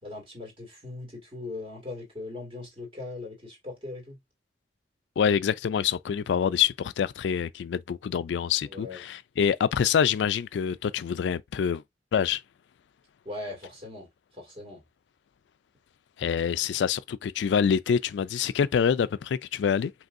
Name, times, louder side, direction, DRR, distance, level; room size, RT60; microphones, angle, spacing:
voice 1, 0.0-4.2 8.6-9.0 13.2-14.1 14.3-14.8, left 2 dB, 30° right, 2.2 m, -39 dB
voice 2, 5.2-11.8 12.1-12.4 16.2-19.9, left 7 dB, 85° left, 0.3 m, -26 dB
5.2 x 3.3 x 2.5 m
head